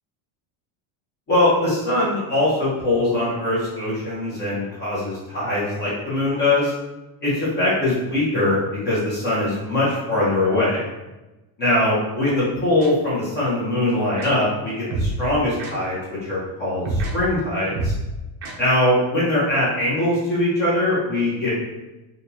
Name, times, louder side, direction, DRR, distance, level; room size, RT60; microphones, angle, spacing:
voice 1, 1.3-6.7 7.2-8.6 8.8-10.8 11.6-17.9 18.6-21.7, left 1 dB, 20° left, -8 dB, 0.9 m, -22 dB
sound 1, 12.8-12.9 14.2-14.3 14.9-15.1 15.6-15.7 16.8-17.1 17.7-18.0 18.4-18.5, right 2 dB, 35° right, 0.7 m, -25 dB
4.3 x 2.6 x 2.8 m, 1.0 s
cardioid pair, 175°, 49 cm